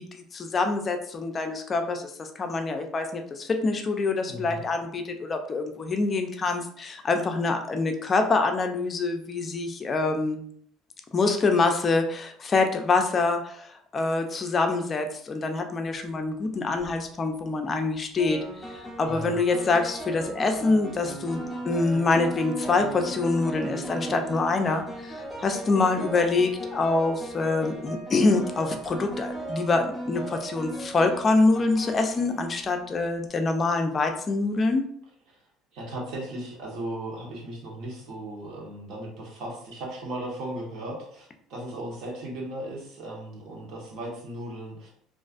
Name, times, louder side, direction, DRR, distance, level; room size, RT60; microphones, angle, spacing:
voice 1, 0.0-10.4 11.1-18.4 18.7-34.9, left 3 dB, 30° left, 5 dB, 0.4 m, -25 dB
voice 2, 4.3-4.6 19.0-19.4 35.3-35.4 35.7-44.9, right 1 dB, 65° right, -3 dB, 1.0 m, -36 dB
sound 1, 16.6-16.9 18.2-33.0, right 1 dB, 5° right, 0.7 m, -37 dB
2.4 x 2.4 x 2.4 m, 0.63 s
cardioid pair, 130°, 0 cm